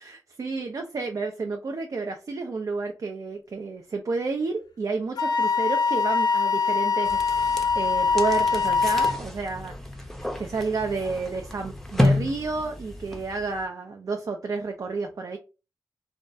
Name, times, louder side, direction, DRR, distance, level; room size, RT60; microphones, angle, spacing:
voice 1, 0.4-9.7 10.4-15.4, right 4 dB, 50° right, 3 dB, 0.4 m, -30 dB
Wind instrument woodwind instrument, 5.2-9.2, left 5 dB, 65° left, 0.4 m, -23 dB
sound 1, 7.0-13.6, left 1 dB, 5° left, 0.5 m, -30 dB
2.3 x 2.0 x 2.6 m, 0.31 s
cardioid pair, 55°, 7 cm